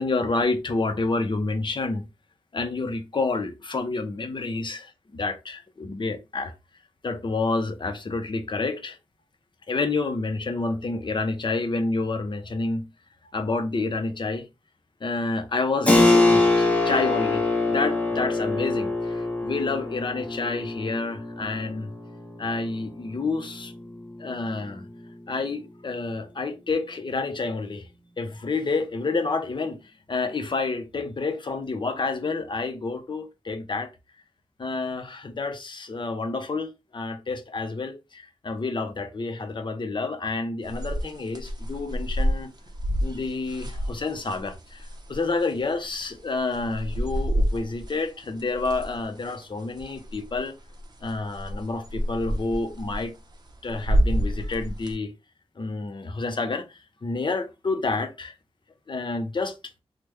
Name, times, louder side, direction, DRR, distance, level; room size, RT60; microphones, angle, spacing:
voice 1, 0.0-2.1 2.5-6.5 7.0-9.0 9.7-12.9 13.3-14.5 15.0-21.9 22.4-23.7 24.2-24.9 25.3-27.9 28.2-33.9 34.6-42.5 43.0-50.6 51.0-53.1 53.6-55.1 55.6-58.3 58.9-59.5, left 3 dB, 45° left, 0.6 m, -29 dB
Keyboard (musical), 15.9-26.2, left 2 dB, 10° left, 0.9 m, -25 dB
sound 1, 40.7-45.3 45.7-45.8 46.0-47.9 48.2-49.4 49.8-50.4 50.7-54.9, equal, 40° right, 0.6 m, -27 dB
3.2 x 2.1 x 3.3 m
wide cardioid pair, 90°, 11 cm